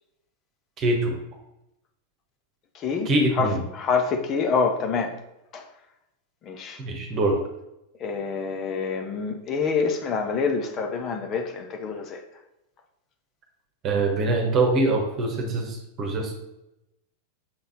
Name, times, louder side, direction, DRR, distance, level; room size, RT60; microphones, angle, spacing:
voice 1, 0.8-1.2 3.0-3.6 6.8-7.4 13.8-16.4, right 2 dB, 35° right, 2 dB, 1.3 m, -24 dB
voice 2, 3.8-5.1 5.5-5.6 6.5-6.8 8.0-12.2, left 5 dB, 30° left, 4 dB, 0.9 m, -26 dB
6.8 x 3.9 x 4.1 m, 0.89 s
figure-of-eight pair, 90°, 0 cm